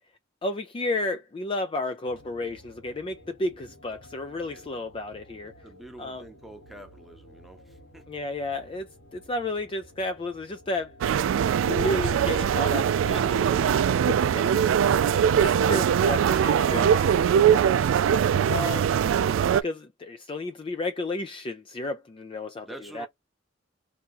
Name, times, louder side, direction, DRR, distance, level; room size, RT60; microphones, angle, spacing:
voice 1, 0.4-5.5 6.0-6.2 8.1-10.9 11.6-14.6 15.4-17.6 18.5-18.9 19.5-23.1, left 2 dB, 25° left, 0.4 m, -32 dB
sound 1, 2.0-17.8, left 1 dB, 70° left, 1.1 m, -52 dB
voice 2, 5.4-8.1 18.8-19.1 22.7-23.1, equal, ahead, 0.8 m, -47 dB
sound 2, 11.0-19.6, right 8 dB, 85° right, 0.3 m, -22 dB
2.8 x 2.7 x 3.7 m
head